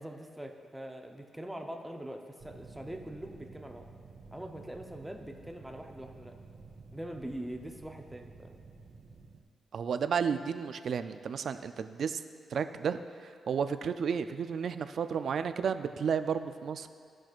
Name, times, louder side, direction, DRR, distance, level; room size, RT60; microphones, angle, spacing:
voice 1, 0.0-3.9 4.3-6.4 6.9-8.6, right 1 dB, 5° right, 3 dB, 0.6 m, -43 dB
sound 1, 2.4-9.4, right 4 dB, 45° right, 0.8 m, -52 dB
voice 2, 9.7-12.2 12.5-16.9, right 6 dB, 60° right, 10 dB, 0.3 m, -32 dB
16.0 x 6.0 x 2.4 m, 2.2 s
cardioid pair, 120°, 0 cm